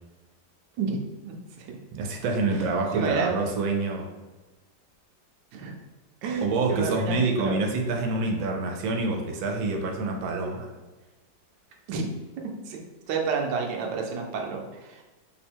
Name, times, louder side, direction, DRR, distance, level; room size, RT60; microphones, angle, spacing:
voice 1, 1.2-1.8 2.9-3.3 5.5-5.7 6.2-7.6 11.9-12.1 12.4-12.8 13.1-15.0, right 5 dB, 70° right, 1 dB, 1.2 m, -30 dB
voice 2, 1.9-4.1 6.4-10.7, right 3 dB, 90° right, 2 dB, 1.4 m, -27 dB
3.3 x 2.1 x 4.3 m, 1.2 s
omnidirectional pair, 2.1 m